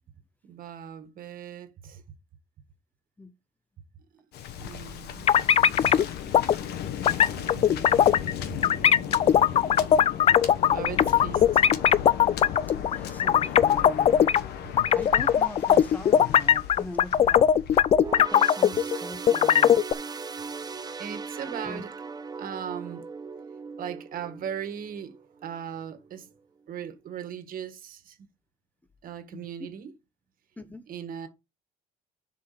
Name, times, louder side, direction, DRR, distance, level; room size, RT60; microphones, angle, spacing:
voice 1, 0.4-2.0 4.1-4.2 4.6-5.7 7.5-9.2 10.7-11.6 20.6-20.7 21.0-22.0 22.4-23.1 23.8-26.3 26.7-28.3 29.0-29.9 30.9-31.3, right 8 dB, 55° right, 1.5 m, -39 dB
Waves surf, 4.3-18.3, left 9 dB, 75° left, 1.1 m, -36 dB
sound 1, 5.3-6.0 6.3-6.5 7.1-8.3 8.6-14.4 14.8-19.0 19.3-19.9, left 9 dB, 35° left, 0.3 m, -19 dB
voice 2, 12.9-14.3 14.9-17.5 18.2-19.8 21.4-21.8 29.3-29.5 30.6-30.8, left 2 dB, 10° left, 0.8 m, -41 dB
sound 2, 17.9-25.6 26.0-26.2 27.1-27.2, right 5 dB, 25° right, 0.7 m, -38 dB
6.8 x 5.0 x 4.9 m
cardioid pair, 110°, 17 cm